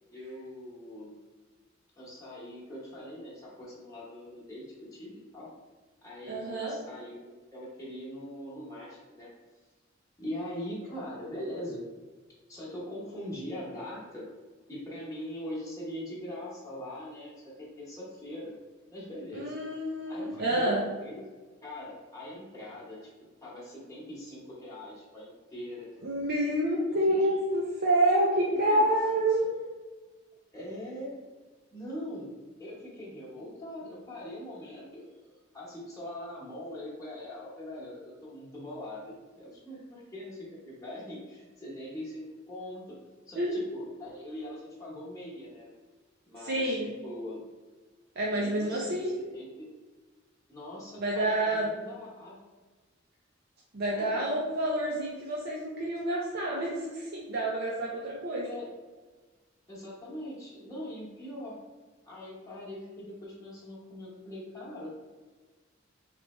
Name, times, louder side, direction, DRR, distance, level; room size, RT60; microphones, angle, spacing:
voice 1, 0.1-1.1 2.0-5.5 6.0-9.3 10.2-11.8 12.5-14.3 14.7-18.5 18.9-19.5 20.1-21.2 21.6-23.0 23.4-26.0 27.1-27.2 28.3-28.8 30.5-31.1 31.7-32.3 32.6-43.0 43.3-45.7 46.2-47.4 48.3-49.5 50.5-52.4 53.9-54.2 58.4-58.7 59.7-61.6 62.0-64.9, left 1 dB, 15° left, -7 dB, 1.0 m, -42 dB
voice 2, 6.2-6.7 19.3-20.8 26.0-29.6 43.4-43.6 46.4-46.9 48.2-49.1 51.0-51.7 53.7-58.5, right 1 dB, 55° right, -4 dB, 0.6 m, -28 dB
4.0 x 3.3 x 3.1 m, 1.3 s
head